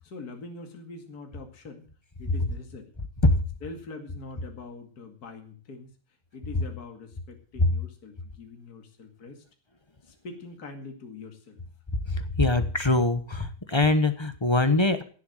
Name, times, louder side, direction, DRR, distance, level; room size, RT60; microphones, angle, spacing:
voice 1, 0.0-1.9 2.2-2.9 3.6-5.9 6.3-9.4 10.0-11.6, left 3 dB, 50° left, 4 dB, 2.7 m, -43 dB
voice 2, 11.9-15.0, left 2 dB, 20° left, 10 dB, 0.7 m, -23 dB
16.5 x 8.0 x 7.9 m, 0.43 s
omnidirectional pair, 2.2 m